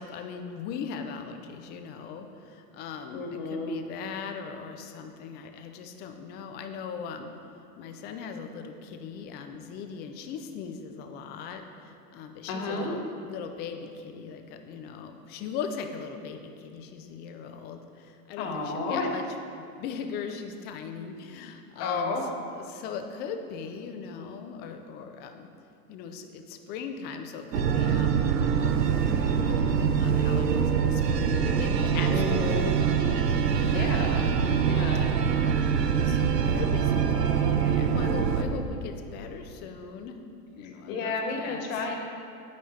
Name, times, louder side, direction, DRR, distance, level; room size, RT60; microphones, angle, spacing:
voice 1, 0.0-7.3 7.8-19.2 19.5-22.2 22.5-25.5 25.9-28.8 29.3-34.7 35.6-40.2 40.5-41.6, left 6 dB, 25° left, 6 dB, 0.4 m, -40 dB
voice 2, 3.1-3.8 12.5-13.0 18.4-19.1 21.8-22.3 32.1-32.7 33.7-34.3 34.7-35.1 40.6-42.0, left 3 dB, 55° left, 2 dB, 1.7 m, -31 dB
sound 1, 27.5-38.4, right 7 dB, 85° right, 0.8 m, -24 dB
9.3 x 8.5 x 3.2 m, 2.6 s
hypercardioid pair, 120°, 48 cm